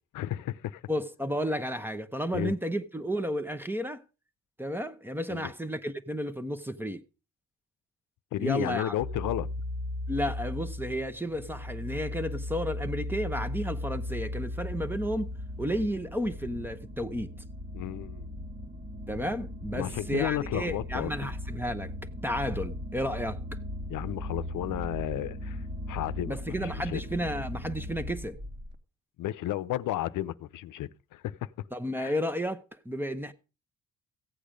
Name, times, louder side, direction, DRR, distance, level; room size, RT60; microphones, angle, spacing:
voice 1, 0.1-0.8 2.3-2.5 5.3-5.5 8.3-9.5 17.7-18.3 19.7-21.3 23.9-25.6 25.9-27.0 29.2-31.5 32.0-32.1, left 13 dB, 90° left, 0.6 m, -33 dB
voice 2, 0.9-4.0 4.6-7.0 8.4-9.0 10.1-15.3 15.6-17.3 19.1-21.9 22.2-23.4 26.3-28.4 31.7-33.3, equal, 5° right, 0.8 m, -32 dB
sound 1, 9.0-15.9, left 1 dB, 55° right, 2.0 m, -36 dB
sound 2, 11.9-28.8, left 1 dB, 35° right, 1.7 m, -40 dB
15.0 x 8.6 x 5.1 m
cardioid pair, 115°, 30 cm